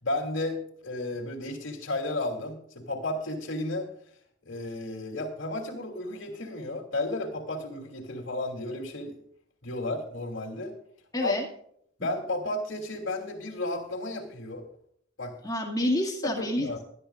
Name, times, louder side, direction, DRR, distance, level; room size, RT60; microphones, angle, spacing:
voice 1, 0.0-3.9 4.4-9.2 9.6-10.7 11.2-11.3 12.0-14.6 15.2-15.4 16.2-16.8, left 2 dB, 65° left, -1 dB, 3.1 m, -33 dB
voice 2, 11.1-11.5 15.4-16.8, left 1 dB, 20° left, 1 dB, 2.1 m, -28 dB
20.0 x 11.5 x 2.5 m, 0.66 s
head